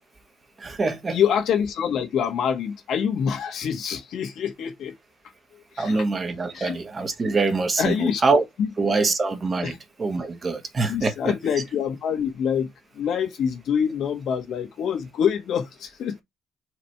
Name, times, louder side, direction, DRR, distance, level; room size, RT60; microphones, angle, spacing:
voice 1, 0.6-1.2 5.8-8.4 8.8-9.7 10.0-11.3, right 3 dB, 35° right, 1.5 m, -24 dB
voice 2, 1.1-4.9 5.5-6.1 6.5-6.8 7.8-8.2 8.6-8.7 9.0-9.1 9.6-9.8 10.9-16.2, left 8 dB, 75° left, 1.8 m, -26 dB
4.9 x 4.1 x 4.7 m
cardioid pair, 90°, 0 cm